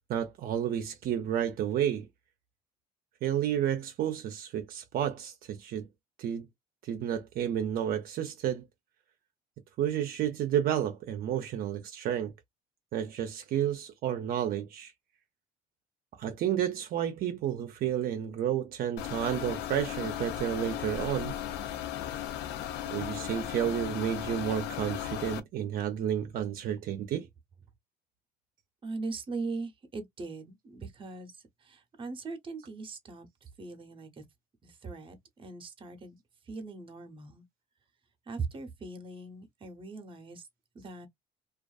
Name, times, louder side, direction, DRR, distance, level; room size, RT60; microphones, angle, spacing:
voice 1, 0.1-2.1 3.2-5.9 6.2-6.5 6.8-8.7 9.8-12.3 12.9-14.9 16.2-21.4 22.9-27.3, right 10 dB, 60° right, 0.5 m, -31 dB
sound 1, 19.0-25.4, left 11 dB, 90° left, 0.5 m, -36 dB
voice 2, 28.8-31.3 31.6-33.3 33.6-34.2 34.6-36.2 36.5-37.4 38.3-40.5 40.7-41.1, right 3 dB, 30° right, 0.7 m, -40 dB
2.4 x 2.3 x 2.3 m
cardioid pair, 110°, 17 cm